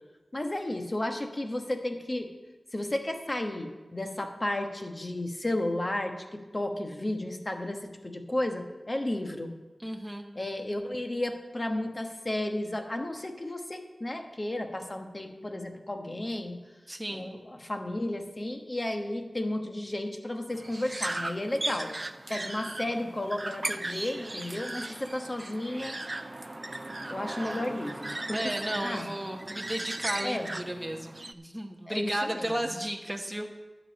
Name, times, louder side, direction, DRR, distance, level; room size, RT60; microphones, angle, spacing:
voice 1, 0.3-2.3 2.7-9.5 10.3-16.6 17.1-21.9 22.3-26.0 27.1-28.5 28.8-29.1 30.2-30.5 31.9-32.7, left 1 dB, 35° left, 5 dB, 1.3 m, -33 dB
voice 2, 9.8-10.3 16.9-17.3 23.0-23.2 28.3-33.5, right 1 dB, 10° right, 2 dB, 0.9 m, -34 dB
sound 1, 20.5-31.3, right 2 dB, 30° right, 0.5 m, -37 dB
11.5 x 5.4 x 8.7 m, 1.2 s
wide cardioid pair, 55°, 0 cm